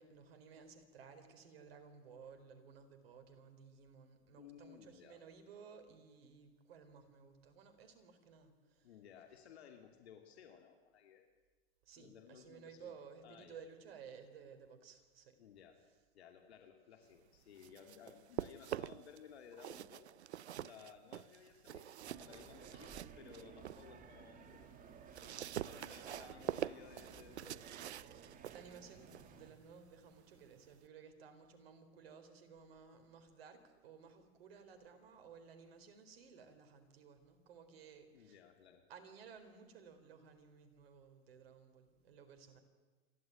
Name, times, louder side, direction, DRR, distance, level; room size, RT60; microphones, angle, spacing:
voice 1, 0.0-8.9 11.8-15.4 26.1-26.5 28.5-38.4 38.9-42.6, right 6 dB, 65° right, 7 dB, 4.4 m, -57 dB
voice 2, 4.3-5.2 8.8-11.3 11.9-12.9 13.2-13.6 15.4-15.8 16.1-20.1 20.6-24.7 25.1-27.7 38.1-38.9, left 8 dB, 75° left, 4 dB, 2.7 m, -58 dB
sound 1, 17.4-19.2 19.5-23.9 24.3-30.9, right 11 dB, 85° right, 0.6 m, -46 dB
sound 2, 22.0-29.5, right 6 dB, 25° right, 2.4 m, -57 dB
28.0 x 12.5 x 9.3 m, 1.3 s
hypercardioid pair, 115°, 33 cm